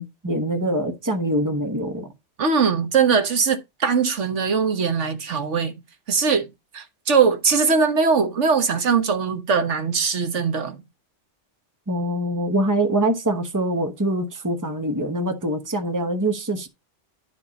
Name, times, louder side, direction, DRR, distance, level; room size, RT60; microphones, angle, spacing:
voice 1, 0.0-2.1 11.9-16.7, right 1 dB, 15° right, 1.1 m, -24 dB
voice 2, 2.4-5.7 6.1-6.5 6.7-10.8, right 5 dB, 80° right, 1.5 m, -21 dB
11.5 x 5.0 x 4.1 m
omnidirectional pair, 1.2 m